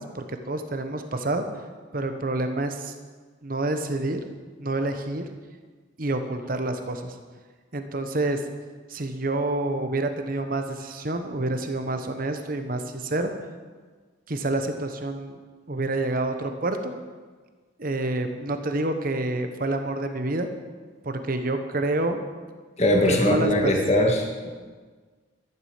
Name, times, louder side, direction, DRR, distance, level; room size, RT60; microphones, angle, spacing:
voice 1, 0.0-1.5 1.9-2.9 3.4-4.2 4.6-5.2 6.0-7.1 7.7-8.4 8.9-13.3 14.3-15.4 15.7-16.9 17.8-20.5 21.0-22.2 23.1-23.7, right 2 dB, 45° right, 7 dB, 1.0 m, -28 dB
voice 2, 22.8-24.5, left 1 dB, 35° left, 1 dB, 1.9 m, -21 dB
12.5 x 11.5 x 5.1 m, 1.5 s
head